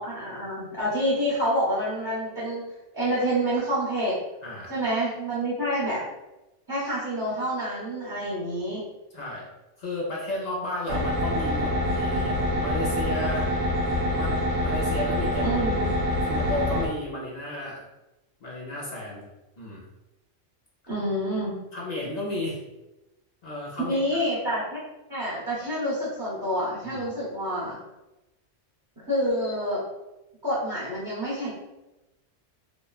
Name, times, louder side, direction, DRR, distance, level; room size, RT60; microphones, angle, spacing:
voice 1, 0.0-2.6 2.9-4.1 4.7-6.0 6.7-8.8 15.4-16.0 20.9-21.5 23.8-24.8 25.1-27.8 29.0-29.8 30.4-31.5, equal, 20° right, -13 dB, 0.8 m, -27 dB
voice 2, 9.1-9.5 9.8-13.5 14.1-15.5 16.2-17.8 18.4-19.3 19.6-19.8 21.7-22.6 23.4-24.2 26.8-27.0, left 1 dB, 50° left, -5 dB, 0.5 m, -33 dB
sound 1, 10.9-16.9, left 1 dB, 90° right, 1.0 m, -26 dB
3.0 x 2.1 x 2.3 m, 0.99 s
omnidirectional pair, 1.3 m